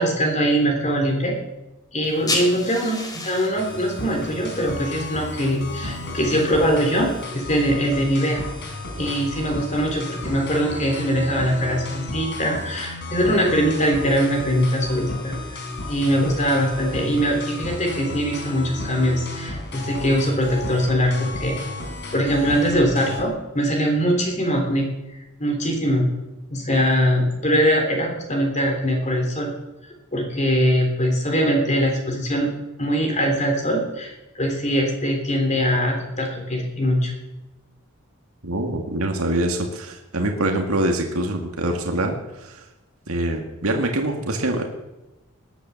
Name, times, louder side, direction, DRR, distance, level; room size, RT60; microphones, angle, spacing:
voice 1, 0.0-1.4 1.9-7.1 7.3-8.4 9.0-15.6 15.9-21.6 22.1-24.9 25.4-26.0 26.5-29.5 30.1-32.5 32.8-37.1, equal, 35° left, 2 dB, 3.6 m, -22 dB
sound 1, 2.0-7.2, left 2 dB, 20° left, 3.4 m, -34 dB
sound 2, 3.6-23.2, left 2 dB, 55° left, 4.0 m, -33 dB
voice 2, 38.4-42.7 43.1-44.7, right 1 dB, 80° right, 3 dB, 2.0 m, -24 dB
19.5 x 10.5 x 7.2 m, 1.0 s
head